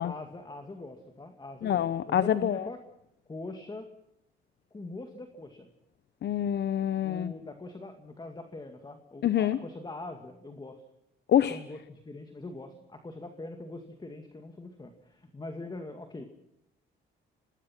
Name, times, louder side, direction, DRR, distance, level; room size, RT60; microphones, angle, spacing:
voice 1, 0.0-2.8 3.3-3.9 4.7-5.7 7.0-10.8 11.5-16.2, left 2 dB, 20° left, 6 dB, 2.2 m, -42 dB
voice 2, 1.6-2.7 6.2-7.3 9.2-9.6 11.3-11.6, left 10 dB, 60° left, 14 dB, 0.8 m, -26 dB
26.5 x 19.5 x 6.0 m, 0.81 s
cardioid pair, 90°, 20 cm